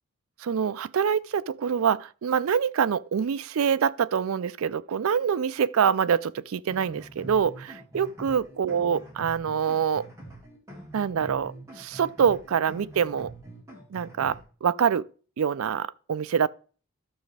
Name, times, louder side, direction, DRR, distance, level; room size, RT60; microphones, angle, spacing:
voice 1, 0.4-10.1 10.9-13.3 13.9-15.1 15.4-16.5, right 7 dB, 70° right, 0.4 m, -25 dB
sound 1, 6.7-14.4, right 1 dB, 15° right, 2.0 m, -44 dB
13.0 x 6.1 x 3.3 m
head